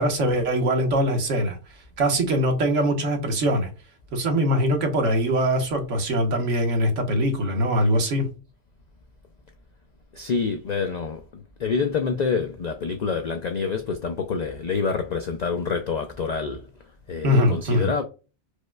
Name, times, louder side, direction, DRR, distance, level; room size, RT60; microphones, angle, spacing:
voice 1, 0.0-1.6 2.0-3.7 4.1-8.3 17.2-17.9, equal, 80° right, 1.3 m, -22 dB
voice 2, 10.1-16.7 17.1-18.0, left 5 dB, 75° left, 0.4 m, -27 dB
4.7 x 2.1 x 2.2 m
omnidirectional pair, 1.3 m